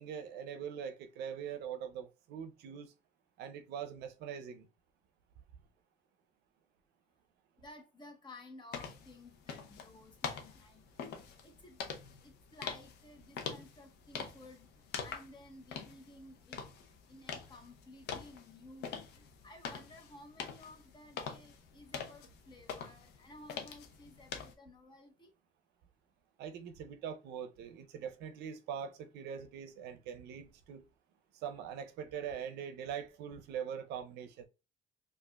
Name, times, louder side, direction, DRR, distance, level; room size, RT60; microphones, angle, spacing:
voice 1, 0.0-2.9 3.4-4.7 26.4-30.8 31.3-34.5, right 8 dB, 80° right, 0.5 m, -42 dB
voice 2, 7.6-11.8 12.2-16.7 17.1-25.3, left 2 dB, 25° left, 0.9 m, -55 dB
sound 1, 8.7-24.5, left 6 dB, 75° left, 0.6 m, -45 dB
4.8 x 2.4 x 2.2 m
cardioid pair, 110°, 17 cm